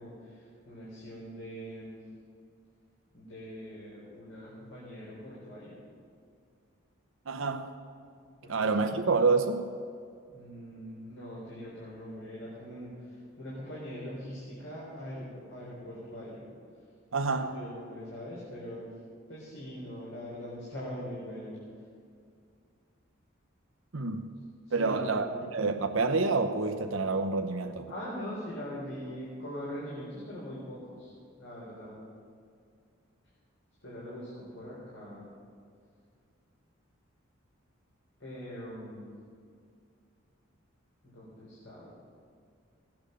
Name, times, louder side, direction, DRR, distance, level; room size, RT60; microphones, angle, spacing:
voice 1, 0.0-2.0 3.1-5.8 8.4-8.9 10.3-16.4 17.3-18.9 19.3-21.6 24.7-25.4 27.9-31.1 31.4-32.0 33.8-35.3 38.2-39.1 41.0-41.9, equal, 70° left, 3.7 m, -42 dB
voice 2, 7.3-7.7 8.5-9.7 17.1-17.6 23.9-24.3 24.7-25.3 25.5-27.9, right 4 dB, 70° right, 0.8 m, -28 dB
17.5 x 8.8 x 6.5 m
head